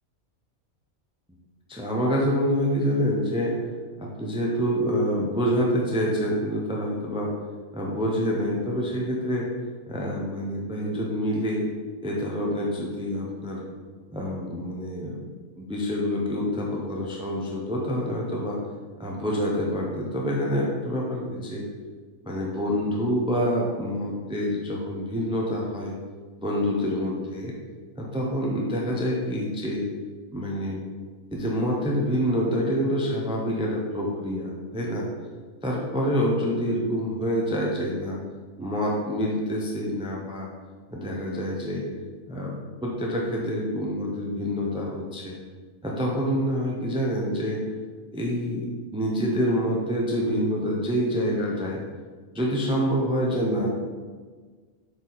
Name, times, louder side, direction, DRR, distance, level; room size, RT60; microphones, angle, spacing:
voice 1, 1.7-3.6 4.0-7.3 7.7-9.5 9.9-11.7 12.0-13.6 14.1-15.3 15.6-18.6 19.0-21.6 22.2-25.9 26.4-27.5 28.0-29.9 30.3-30.8 31.3-35.0 35.6-38.2 38.6-40.5 40.9-41.9 42.3-42.5 42.8-45.4 45.8-47.6 48.1-51.8 52.3-53.7, equal, 5° right, -3 dB, 0.8 m, -27 dB
7.9 x 4.8 x 4.1 m, 1.5 s
omnidirectional pair, 1.4 m